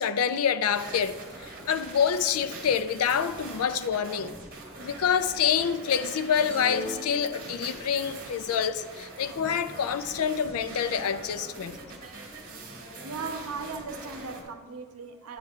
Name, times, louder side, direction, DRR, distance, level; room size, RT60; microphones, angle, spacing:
voice 1, 0.0-4.3 4.8-11.8, left 7 dB, 80° left, 0.4 m, -27 dB
sound 1, 0.6-14.4, right 2 dB, 40° right, 1.5 m, -43 dB
sound 2, 6.4-8.0, left 1 dB, 10° left, 2.5 m, -39 dB
voice 2, 12.4-15.4, right 4 dB, 85° right, 0.7 m, -38 dB
9.5 x 8.5 x 2.4 m
head